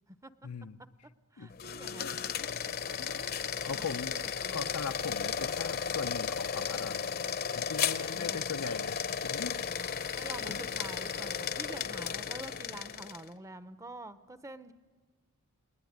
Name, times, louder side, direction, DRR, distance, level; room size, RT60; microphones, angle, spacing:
voice 1, 0.4-0.8 1.4-1.5 2.0-2.2 3.0-4.2 4.5-7.1 7.5-9.6 10.5-10.6, left 5 dB, 90° left, 10 dB, 0.7 m, -40 dB
voice 2, 1.3-2.1 2.9-3.4 3.7-4.7 8.1-8.5 9.9-14.7, right 1 dB, 15° right, 13 dB, 0.7 m, -47 dB
sound 1, 1.5-13.3, left 7 dB, 45° left, 0.8 m, -34 dB
28.0 x 20.0 x 9.5 m, 1.5 s
head